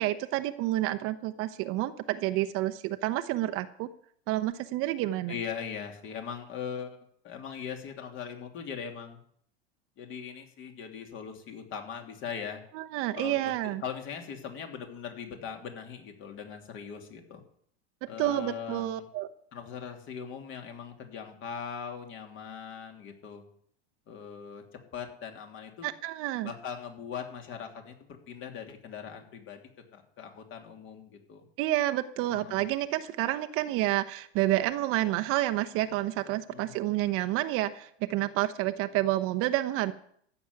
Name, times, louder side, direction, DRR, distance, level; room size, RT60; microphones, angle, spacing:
voice 1, 0.0-3.9 4.3-5.3 12.7-13.8 18.2-19.3 25.8-26.5 31.6-39.9, right 15 dB, 40° right, 8 dB, 0.9 m, -29 dB
voice 2, 5.3-7.0 7.2-9.2 10.0-12.6 13.2-13.4 13.6-17.4 18.1-19.0 19.5-23.4 24.1-25.9 26.4-27.9 28.3-29.6 29.9-31.4 32.3-32.6 36.5-36.7, left 7 dB, 35° left, 4 dB, 3.0 m, -40 dB
14.5 x 7.3 x 9.5 m, 0.65 s
supercardioid pair, 130°, 33 cm